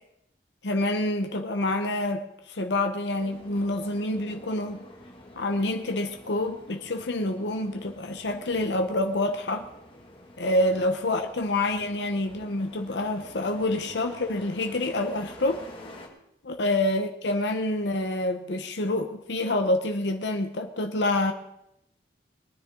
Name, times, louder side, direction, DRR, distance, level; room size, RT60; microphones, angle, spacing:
voice 1, 0.6-4.8 5.3-9.7 10.4-15.6 16.5-21.3, left 1 dB, 90° left, 5 dB, 1.0 m, -27 dB
sound 1, 3.1-16.1, left 1 dB, 30° left, 2.1 m, -48 dB
22.0 x 9.8 x 3.8 m, 0.81 s
head